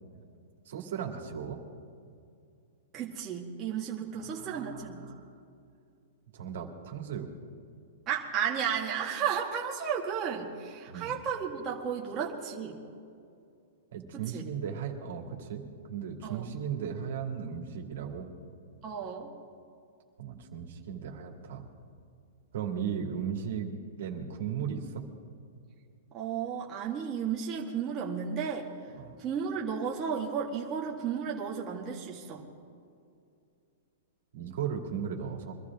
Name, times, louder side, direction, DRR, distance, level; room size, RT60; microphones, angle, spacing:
voice 1, 0.7-1.6 4.2-5.3 6.3-7.3 10.9-11.1 13.9-18.3 20.2-21.7 22.5-23.7 24.0-25.0 28.9-29.2 34.3-35.6, right 7 dB, 70° right, 1 dB, 2.4 m, -36 dB
voice 2, 2.9-5.0 8.1-12.8 14.1-14.4 16.2-16.5 18.8-19.3 26.1-28.7 29.2-32.4, right 7 dB, 25° right, -3 dB, 1.7 m, -33 dB
24.0 x 13.0 x 3.6 m, 2.4 s
hypercardioid pair, 150°, 0 cm